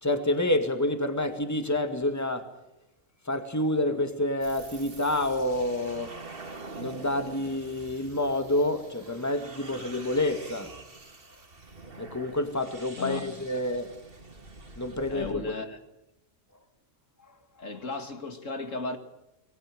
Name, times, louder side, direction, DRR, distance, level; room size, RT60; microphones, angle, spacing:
voice 1, 0.0-2.5 3.3-6.1 6.8-10.7 12.0-13.9 14.8-15.5, left 1 dB, 15° left, 2.2 m, -28 dB
sound 1, 4.4-15.3, right 3 dB, 45° right, 2.5 m, -45 dB
voice 2, 15.1-15.8 17.6-19.0, left 3 dB, 75° left, 2.7 m, -35 dB
28.0 x 20.5 x 7.7 m
omnidirectional pair, 1.3 m